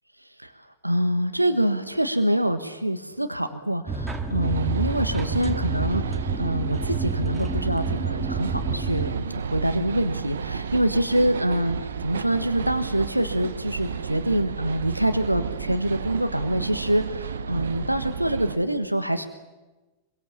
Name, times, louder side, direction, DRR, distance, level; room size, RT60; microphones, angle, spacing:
voice 1, 0.2-19.2, right 1 dB, 85° right, 8 dB, 1.4 m, -25 dB
sound 1, 3.9-9.1, right 4 dB, 10° right, 3.2 m, -29 dB
sound 2, 4.4-18.6, right 6 dB, 70° right, 1.2 m, -32 dB
25.5 x 22.5 x 7.3 m, 1.2 s
figure-of-eight pair, 90°, 0 cm